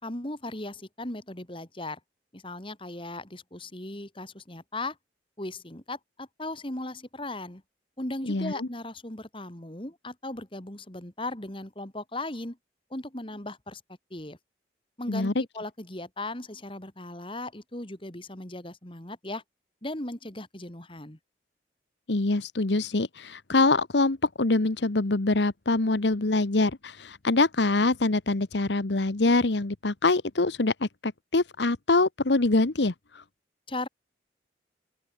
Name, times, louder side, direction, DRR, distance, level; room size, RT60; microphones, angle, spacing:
voice 1, 0.0-2.0 2.3-5.0 5.4-7.6 8.0-12.6 12.9-13.8 14.1-14.4 15.0-19.4 19.8-21.2 33.7-33.9, left 2 dB, 30° left, 2.5 m, -37 dB
voice 2, 8.3-8.7 15.1-15.4 22.1-33.2, left 2 dB, 75° left, 1.1 m, -24 dB
open air
head